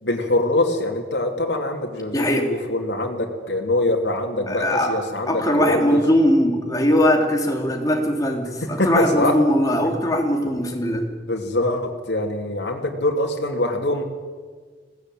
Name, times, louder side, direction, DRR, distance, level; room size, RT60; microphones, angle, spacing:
voice 1, 0.0-6.0 8.6-9.4 9.8-9.9 11.3-14.0, left 1 dB, 80° left, 1 dB, 2.7 m, -24 dB
voice 2, 2.1-2.5 4.5-4.9 5.3-11.0, equal, 20° left, 2 dB, 3.1 m, -20 dB
20.5 x 17.0 x 9.2 m, 1.5 s
head